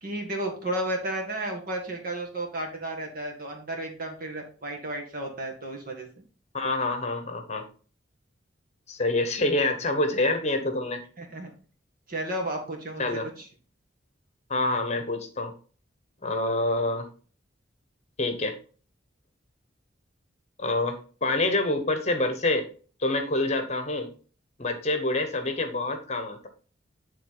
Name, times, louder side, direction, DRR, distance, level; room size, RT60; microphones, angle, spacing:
voice 1, 0.0-6.1 11.2-11.5 12.1-13.0 13.4-13.5, right 1 dB, 50° right, 1 dB, 1.9 m, -33 dB
voice 2, 6.5-7.7 8.9-11.0 13.0-13.3 14.5-15.5 16.2-17.1 18.2-18.5 20.6-22.7 23.0-24.1 24.6-26.5, left 2 dB, 35° left, 6 dB, 1.0 m, -27 dB
10.0 x 3.6 x 3.8 m, 0.39 s
head